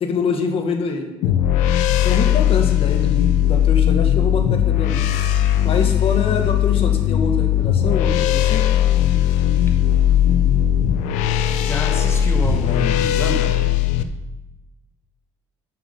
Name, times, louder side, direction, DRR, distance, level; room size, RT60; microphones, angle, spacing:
voice 1, 0.0-1.3 2.0-5.1 5.6-8.7, left 4 dB, 55° left, 5 dB, 1.3 m, -25 dB
sound 1, 1.2-14.0, left 10 dB, 90° left, 0.6 m, -18 dB
voice 2, 11.6-13.6, left 2 dB, 20° left, 3 dB, 1.5 m, -28 dB
7.3 x 6.1 x 5.2 m, 1.0 s
cardioid pair, 95°, 12 cm